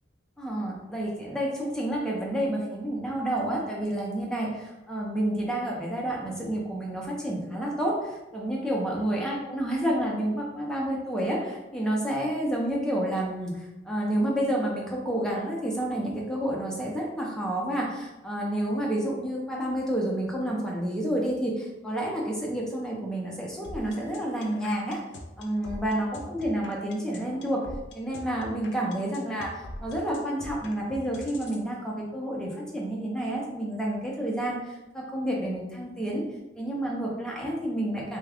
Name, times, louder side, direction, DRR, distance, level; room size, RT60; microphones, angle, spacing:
voice 1, 0.4-25.0 25.4-27.6 27.9-36.2 36.6-38.2, right 1 dB, 5° left, -3 dB, 0.6 m, -29 dB
sound 1, 23.6-31.6, left 1 dB, 65° left, 0.5 m, -42 dB
3.3 x 2.3 x 3.5 m, 1.0 s
head